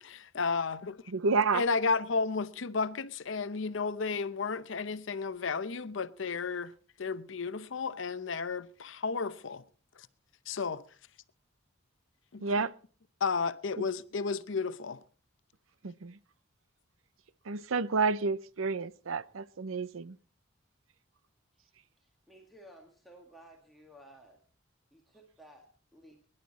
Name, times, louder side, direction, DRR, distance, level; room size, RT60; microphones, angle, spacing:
voice 1, 0.0-1.0 1.5-6.7 7.0-9.6 10.5-10.8 12.3-12.7 13.2-15.0, left 4 dB, 70° left, 0.7 m, -33 dB
voice 2, 1.1-1.6 12.4-12.7 13.8-13.9 15.8-16.2 17.5-20.2, right 4 dB, 90° right, 0.7 m, -30 dB
voice 3, 21.5-24.4 24.9-26.3, right 1 dB, ahead, 1.7 m, -56 dB
22.0 x 11.0 x 4.0 m
head